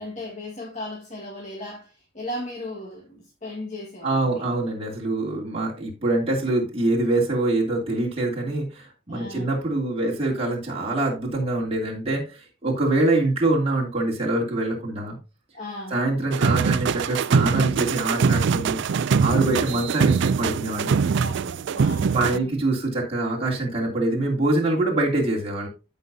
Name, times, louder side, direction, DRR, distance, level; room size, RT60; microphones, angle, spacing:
voice 1, 0.0-4.5 9.1-9.5 15.5-16.0 19.5-19.8 21.1-22.5, left 1 dB, 35° left, 1.8 m, -36 dB
voice 2, 4.0-15.2 15.9-18.8 19.2-21.1 22.1-25.7, right 2 dB, 30° right, 3.0 m, -24 dB
sound 1, 16.3-22.4, right 5 dB, 60° right, 0.4 m, -23 dB
14.5 x 5.5 x 2.8 m
head